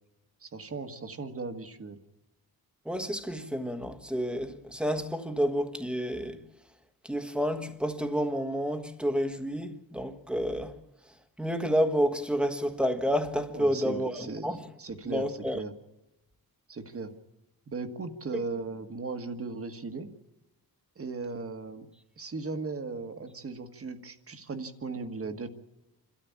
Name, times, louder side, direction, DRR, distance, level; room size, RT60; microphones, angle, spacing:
voice 1, 0.4-2.0 13.5-14.5 14.8-15.2 15.5-15.7 16.7-17.1 17.7-20.1 21.0-21.9 22.2-25.5, right 4 dB, 40° right, 1.7 m, -37 dB
voice 2, 2.8-6.4 7.0-10.8 11.4-14.7 15.1-15.6 18.3-18.4, equal, 5° right, 1.5 m, -30 dB
28.0 x 13.0 x 8.7 m
wide cardioid pair, 150°, 37 cm